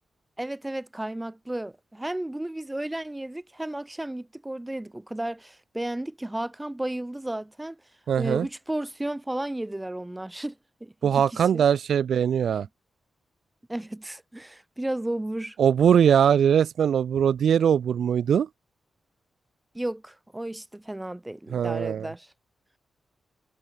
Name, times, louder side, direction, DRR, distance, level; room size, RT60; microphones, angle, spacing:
voice 1, 0.4-7.8 8.2-11.6 13.7-15.6 19.7-22.3, right 1 dB, 10° right, 2.5 m, -33 dB
voice 2, 8.1-8.5 11.0-12.7 15.6-18.5 21.5-22.1, right 8 dB, 70° right, 0.6 m, -21 dB
wide cardioid pair, 175°, 0 cm